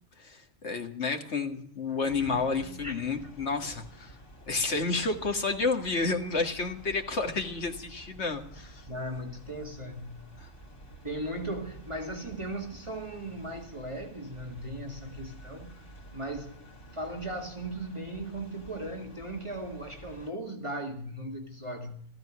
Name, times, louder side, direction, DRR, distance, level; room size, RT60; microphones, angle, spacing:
voice 1, 0.2-4.2 4.5-8.9 10.4-10.5, left 4 dB, 70° left, 2.0 m, -30 dB
sound 1, 2.0-20.3, right 1 dB, 85° left, 2.8 m, -50 dB
voice 2, 8.9-10.3 11.0-15.8 16.1-16.6 16.9-22.0, right 1 dB, 25° right, 1.9 m, -37 dB
15.0 x 13.5 x 6.1 m
omnidirectional pair, 1.2 m